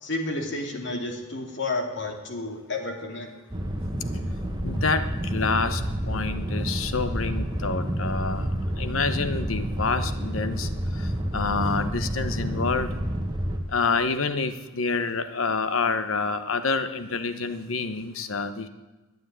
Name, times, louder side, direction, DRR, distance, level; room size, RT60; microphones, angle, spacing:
voice 1, 0.0-3.3, left 2 dB, 60° left, 3 dB, 2.6 m, -31 dB
sound 1, 3.5-13.6, equal, 20° right, 1.4 m, -29 dB
voice 2, 4.6-8.5 8.8-10.7 11.0-11.1 11.3-12.9 13.7-18.7, left 4 dB, 85° left, 10 dB, 1.0 m, -27 dB
12.5 x 9.3 x 9.2 m, 1.2 s
head